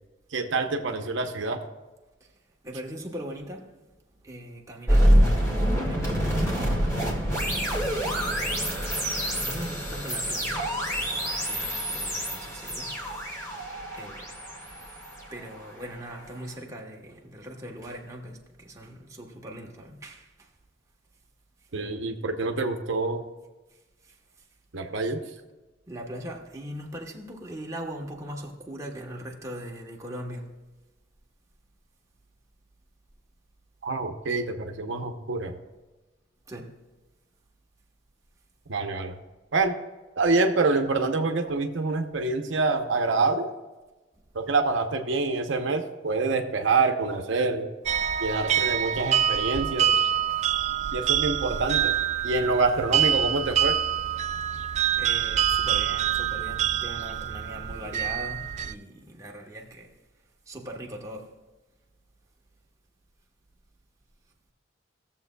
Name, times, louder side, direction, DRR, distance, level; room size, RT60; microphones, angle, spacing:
voice 1, 0.3-1.6 21.7-23.2 24.7-25.2 33.8-35.5 38.7-39.1 39.5-39.7 40.2-43.5 44.3-47.7 48.2-50.0 50.9-51.9 52.2-53.8, right 3 dB, 70° right, 0.7 m, -26 dB
voice 2, 2.6-3.8 4.2-7.1 7.6-8.7 9.4-13.0 13.3-13.5 13.9-14.9 15.3-20.5 23.7-24.5 25.9-30.6 36.5-36.8 47.9-48.2 54.5-60.0 60.5-61.4, equal, 15° right, 1.0 m, -40 dB
sound 1, 4.9-15.9, equal, 15° left, 1.8 m, -26 dB
sound 2, 47.9-58.7, right 10 dB, 35° right, 0.3 m, -26 dB
17.5 x 7.1 x 2.2 m
head